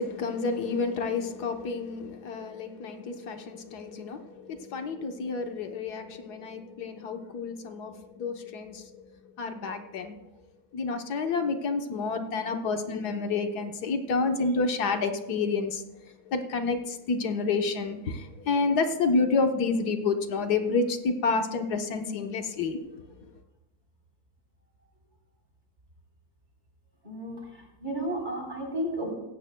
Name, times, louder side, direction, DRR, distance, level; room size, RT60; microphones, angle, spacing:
voice 1, 0.0-9.0 9.4-10.2 10.7-15.8 16.2-22.8, left 4 dB, 85° left, 5 dB, 1.6 m, -29 dB
voice 2, 27.0-29.1, right 1 dB, 30° right, -1 dB, 3.9 m, -33 dB
17.0 x 16.0 x 2.2 m, 0.96 s
omnidirectional pair, 1.6 m